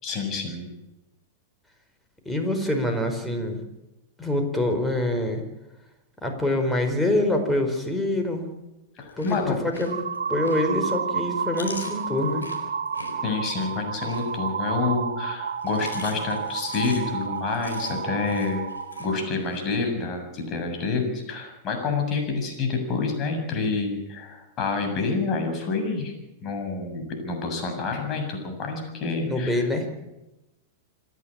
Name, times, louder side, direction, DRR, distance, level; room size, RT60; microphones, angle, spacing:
voice 1, 0.0-0.7 9.0-9.6 13.2-18.6 19.0-26.1 26.4-29.6, left 4 dB, 35° left, 4 dB, 7.0 m, -28 dB
voice 2, 2.2-3.6 4.2-5.4 6.2-8.4 9.2-10.0 10.3-12.5 29.2-29.9, left 1 dB, 10° left, 5 dB, 4.8 m, -25 dB
Chewing mastication, 9.0-10.8 11.2-14.8 15.5-19.6, left 4 dB, 85° left, 4.5 m, -43 dB
sound 1, 9.8-19.2, right 6 dB, 80° right, 1.9 m, -31 dB
27.5 x 11.0 x 8.9 m, 0.97 s
hypercardioid pair, 100°, 0 cm